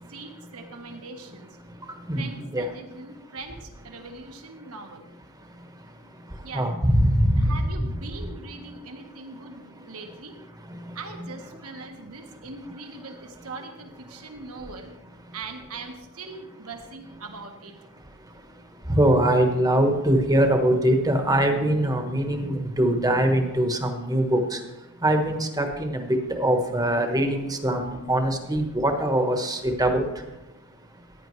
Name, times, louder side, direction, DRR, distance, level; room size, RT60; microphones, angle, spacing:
voice 1, 0.1-1.5 2.1-5.0 6.4-6.7 7.4-10.3 10.9-15.1 15.3-17.7, right 3 dB, 70° right, 1.5 m, -41 dB
voice 2, 1.6-2.7 5.3-7.6 10.7-11.0 18.2-24.6 25.0-30.3 30.9-31.0, right 1 dB, 15° right, 1.2 m, -23 dB
15.0 x 10.0 x 3.2 m
head